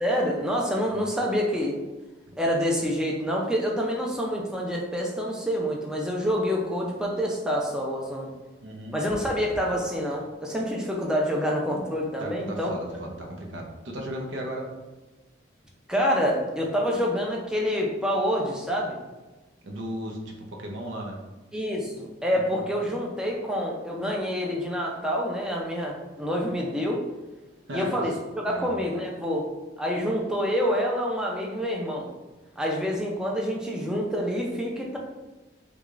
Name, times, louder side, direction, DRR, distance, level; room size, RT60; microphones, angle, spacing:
voice 1, 0.0-1.7 2.4-8.3 8.9-12.7 15.9-19.0 21.5-27.0 27.7-29.5 29.8-32.1 32.6-35.0, equal, 5° right, -2 dB, 0.4 m, -27 dB
voice 2, 8.6-9.0 12.2-14.7 19.6-21.2 22.4-22.6 26.4-26.5 27.7-27.9 28.4-28.7, equal, 75° right, 0 dB, 0.7 m, -36 dB
4.7 x 2.3 x 2.4 m, 1.1 s
head